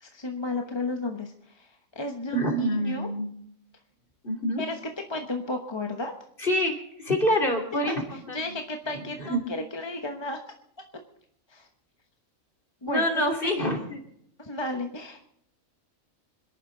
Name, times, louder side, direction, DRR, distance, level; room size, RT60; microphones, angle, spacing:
voice 1, 0.0-3.1 4.6-4.8 5.1-6.1 7.9-10.4 11.5-11.7 12.8-13.0 13.4-13.7 14.4-15.3, left 2 dB, 20° left, 3 dB, 1.0 m, -33 dB
voice 2, 2.3-3.3 4.2-4.6 6.4-6.7 7.0-8.4 9.2-9.4 12.9-14.0, equal, 40° left, 2 dB, 3.1 m, -26 dB
26.5 x 11.0 x 3.9 m, 0.71 s
omnidirectional pair, 1.4 m